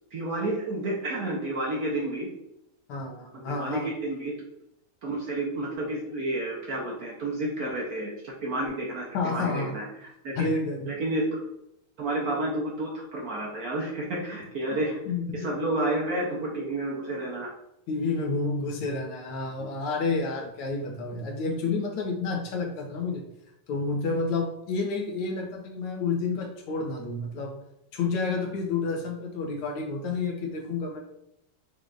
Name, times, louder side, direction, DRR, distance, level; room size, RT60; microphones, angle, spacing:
voice 1, 0.1-2.3 3.3-4.3 5.0-10.5 10.9-11.4 12.0-15.0 15.3-17.5, right 1 dB, 60° right, -3 dB, 1.1 m, -30 dB
voice 2, 2.9-3.9 9.1-9.8 10.4-10.9 14.7-14.8 15.1-15.5 17.9-23.3 23.7-27.6 27.9-31.0, left 3 dB, 80° left, 3 dB, 1.7 m, -30 dB
6.5 x 3.4 x 2.4 m, 0.80 s
omnidirectional pair, 2.3 m